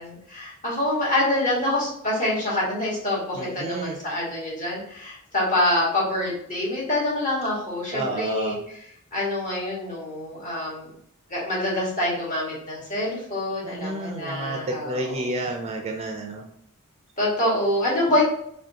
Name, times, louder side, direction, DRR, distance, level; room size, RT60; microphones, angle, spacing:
voice 1, 0.0-8.6 9.1-10.9 11.3-14.9 17.2-18.2, left 1 dB, 35° left, -6 dB, 1.5 m, -26 dB
voice 2, 3.3-4.0 7.9-8.6 13.6-16.5, right 2 dB, 30° right, 2 dB, 0.4 m, -30 dB
4.9 x 2.2 x 2.8 m, 0.70 s
head